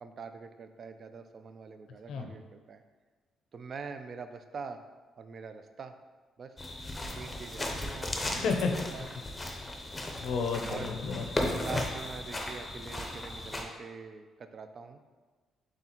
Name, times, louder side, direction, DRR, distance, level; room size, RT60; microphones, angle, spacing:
voice 1, 0.0-2.8 3.5-4.8 5.2-5.9 6.4-6.5 7.1-9.1 10.7-11.0 11.6-15.0, right 5 dB, 50° right, 8 dB, 0.3 m, -44 dB
sound 1, 6.6-13.6, left 1 dB, 20° left, 0.6 m, -36 dB
voice 2, 8.2-8.7 10.2-11.6, left 5 dB, 75° left, 3 dB, 0.5 m, -32 dB
3.9 x 3.7 x 2.9 m, 1.4 s
cardioid pair, 90°, 0 cm